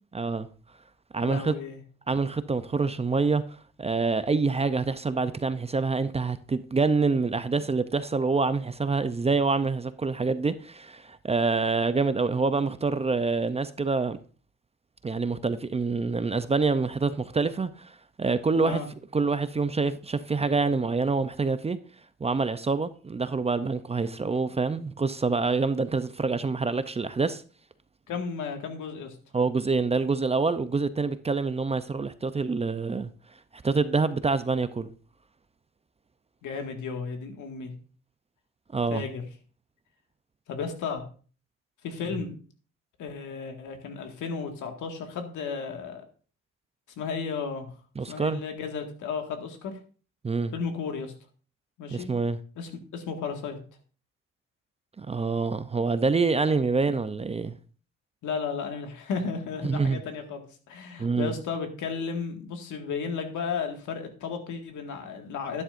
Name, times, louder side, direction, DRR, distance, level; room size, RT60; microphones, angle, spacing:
voice 1, 0.1-0.5 1.1-1.5 2.1-3.4 3.8-14.2 15.0-18.8 19.1-21.8 22.2-27.4 29.3-33.1 33.5-34.9 38.7-39.0 48.0-48.4 50.2-50.5 51.9-52.4 55.0-57.6 59.6-60.0 61.0-61.3, right 4 dB, 20° right, 0.5 m, -26 dB
voice 2, 1.2-1.8 18.6-18.9 28.1-29.2 36.4-37.7 38.9-39.2 40.5-41.0 41.8-42.4 43.0-46.0 47.0-47.7 48.1-49.8 50.5-51.1 51.8-52.1 52.6-53.6 58.2-65.6, left 5 dB, 80° left, 1.9 m, -34 dB
11.5 x 10.0 x 2.6 m
cardioid pair, 90°, 30 cm